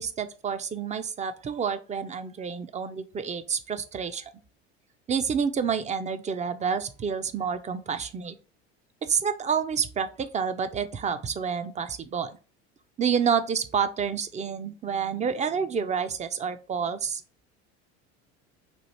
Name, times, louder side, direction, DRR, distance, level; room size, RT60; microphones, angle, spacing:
voice 1, 0.0-4.3 5.1-8.4 9.0-12.3 13.0-17.2, right 6 dB, 20° right, 10 dB, 0.4 m, -29 dB
3.2 x 2.4 x 4.0 m, 0.36 s
hypercardioid pair, 80°, 33 cm